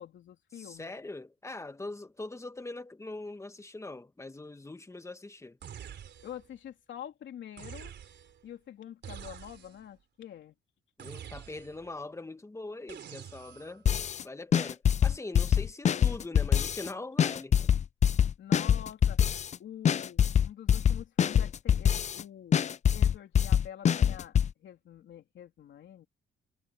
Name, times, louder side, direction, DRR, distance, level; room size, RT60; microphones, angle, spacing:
voice 1, 0.0-0.9 6.2-7.9 8.4-10.5 18.4-19.2 19.6-22.6 22.9-26.1, left 10 dB, 70° left, 3.3 m, -46 dB
voice 2, 0.5-5.6 11.0-13.8 14.2-17.7, left 2 dB, 15° left, 1.6 m, -42 dB
sound 1, 5.6-6.5 7.6-8.4 9.0-9.9 11.0-11.9 12.9-13.8, right 9 dB, 60° right, 3.8 m, -46 dB
sound 2, 13.9-14.2 14.5-16.9 17.2-19.6 19.9-22.2 22.5-24.5, left 8 dB, 35° left, 0.4 m, -24 dB
cardioid pair, 90°, 20 cm